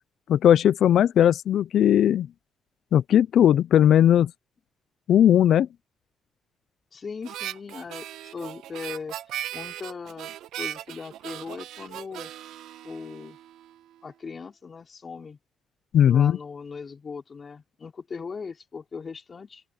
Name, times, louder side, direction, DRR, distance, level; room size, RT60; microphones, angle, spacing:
voice 1, 0.3-2.3 2.9-4.3 5.1-5.7 15.9-16.4, left 10 dB, 70° left, 0.5 m, -18 dB
voice 2, 6.9-8.1 8.3-9.2 9.5-12.3 12.8-13.4 14.0-15.4 16.0-19.6, left 5 dB, 40° left, 5.2 m, -39 dB
Harmonica, 7.2-13.7, right 12 dB, 85° right, 1.5 m, -38 dB
open air
cardioid pair, 90°, 0 cm